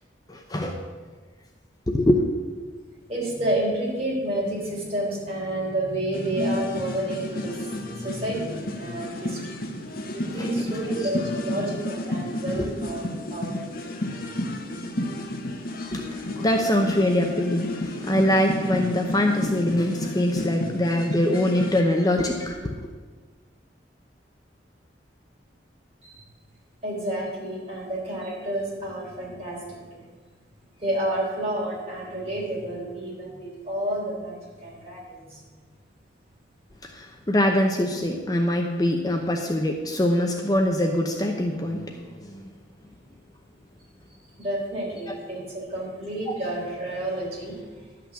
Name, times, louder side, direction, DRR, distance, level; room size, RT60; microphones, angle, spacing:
voice 1, 0.3-0.8 1.9-2.2 10.4-10.5 12.6-12.7 15.9-22.8 36.8-42.4, left 1 dB, 20° left, 3 dB, 0.7 m, -23 dB
voice 2, 3.1-9.5 10.1-13.5 26.0-26.2 26.8-30.0 30.8-35.5 44.4-48.1, right 1 dB, 35° right, -4 dB, 3.5 m, -30 dB
sound 1, 6.1-21.8, left 1 dB, 50° left, 1.0 m, -31 dB
11.5 x 5.9 x 7.3 m, 1.4 s
head